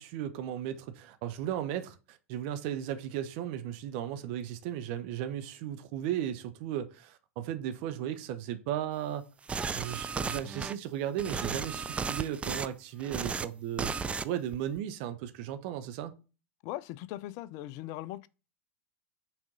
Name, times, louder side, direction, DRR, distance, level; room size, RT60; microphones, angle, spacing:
voice 1, 0.0-9.3 9.7-13.9 14.2-16.1, right 11 dB, 50° right, 0.7 m, -36 dB
sound 1, 9.5-10.7 11.2-12.7 13.0-13.5 13.8-14.3 14.5-14.8, right 5 dB, 15° right, 0.4 m, -34 dB
voice 2, 16.6-18.3, left 15 dB, 45° left, 0.4 m, -39 dB
6.1 x 4.2 x 3.8 m
figure-of-eight pair, 85°, 8 cm